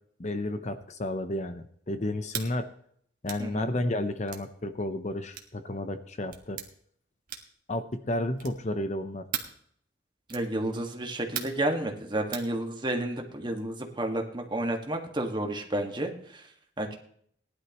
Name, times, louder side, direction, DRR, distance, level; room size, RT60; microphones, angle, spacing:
voice 1, 0.2-2.7 3.2-6.6 7.7-9.3, left 1 dB, 40° left, 9 dB, 0.7 m, -32 dB
sound 1, 2.3-2.5 3.3-3.5 4.3-4.5 5.3-5.6 6.3-6.7 7.3-7.6 8.4-8.7 9.3-9.6 10.3-10.5 11.4-11.7 12.3-12.5, right 9 dB, 50° right, 1.6 m, -37 dB
voice 2, 3.4-3.7 10.3-16.4 16.8-17.0, right 1 dB, 25° right, 3 dB, 1.7 m, -31 dB
19.0 x 11.5 x 3.0 m, 0.63 s
head